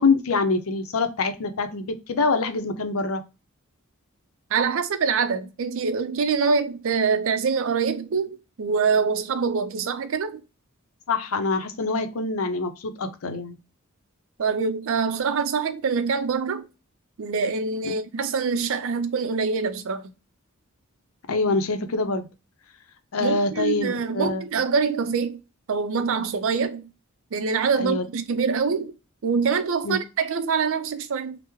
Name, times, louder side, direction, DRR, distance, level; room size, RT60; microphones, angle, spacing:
voice 1, 0.0-3.2 11.1-13.6 17.8-17.9 21.3-22.3 23.1-24.4 27.8-28.0 29.8-30.0, left 3 dB, 70° left, 0.5 m, -25 dB
voice 2, 4.5-10.4 14.4-16.7 17.2-20.0 23.2-25.4 25.7-26.9 27.3-28.9 29.2-31.4, right 5 dB, 65° right, 0.4 m, -25 dB
3.0 x 2.0 x 3.4 m
head